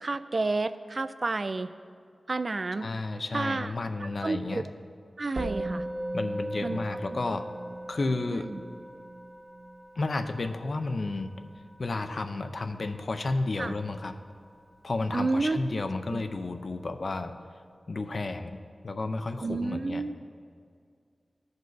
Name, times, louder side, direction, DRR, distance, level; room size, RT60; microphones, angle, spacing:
voice 1, 0.0-1.7 2.3-2.9 3.3-3.7 4.0-4.6 5.2-5.8 6.6-6.8 8.3-8.6 13.6-13.7 15.1-15.6 16.1-16.2 19.4-20.1, right 3 dB, 50° right, 12 dB, 0.3 m, -30 dB
voice 2, 2.8-4.7 6.1-7.4 7.9-8.5 10.0-11.3 11.8-14.1 14.8-17.3 17.9-20.0, left 3 dB, 60° left, 8 dB, 0.5 m, -32 dB
Musical instrument, 5.4-14.9, right 1 dB, 80° right, 1.4 m, -39 dB
14.5 x 5.3 x 3.9 m, 2.2 s
wide cardioid pair, 80°, 0 cm